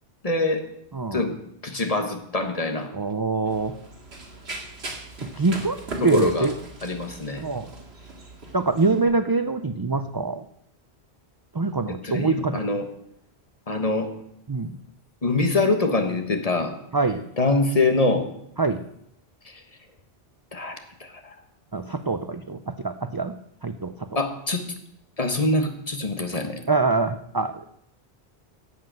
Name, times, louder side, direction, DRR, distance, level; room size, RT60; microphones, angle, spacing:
voice 1, 0.2-0.6 1.1-1.4 1.6-2.9 6.0-6.5 6.8-7.4 11.9-12.9 13.7-14.1 15.2-16.7 17.4-18.3 19.4-19.6 20.5-21.3 24.1-24.6 25.2-26.6, left 2 dB, 35° left, 6 dB, 1.4 m, -24 dB
voice 2, 2.9-3.8 5.3-5.8 6.0-6.5 7.4-7.7 8.5-10.4 11.5-12.6 14.5-14.7 16.9-17.3 18.6-18.8 21.7-23.3 23.6-23.9 26.7-27.6, right 3 dB, 35° right, 9 dB, 0.4 m, -24 dB
Run, 3.5-9.0, right 2 dB, 75° right, 2.3 m, -39 dB
11.0 x 7.7 x 7.6 m, 0.74 s
omnidirectional pair, 1.1 m